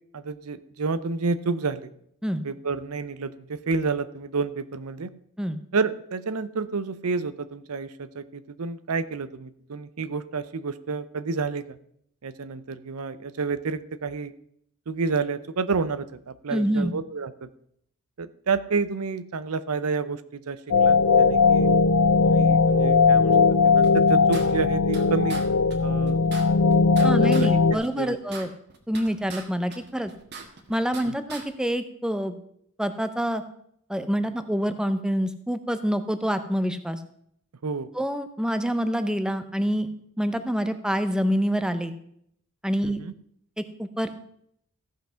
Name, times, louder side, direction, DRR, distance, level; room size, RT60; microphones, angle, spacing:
voice 1, 0.1-1.9 2.4-5.1 5.7-11.8 12.2-14.3 14.9-17.5 18.2-21.7 22.2-25.4 25.8-26.2 27.0-28.2 31.1-31.2 37.6-37.9 42.8-43.1, right 4 dB, 75° right, 14 dB, 0.6 m, -30 dB
voice 2, 16.5-16.9 27.0-28.5 28.9-30.1 30.7-32.4 32.8-33.4 33.9-37.0 37.9-39.9 40.2-41.9 42.6-43.0 43.6-44.1, equal, 5° right, 10 dB, 0.7 m, -26 dB
sound 1, 20.7-27.7, left 4 dB, 75° left, 0.6 m, -19 dB
sound 2, 23.8-25.0 25.3-25.4 25.7-25.8 26.1-27.5 27.8-29.4 29.7-31.0 31.3-31.4, right 4 dB, 50° right, 1.5 m, -40 dB
15.0 x 5.8 x 5.6 m, 0.69 s
head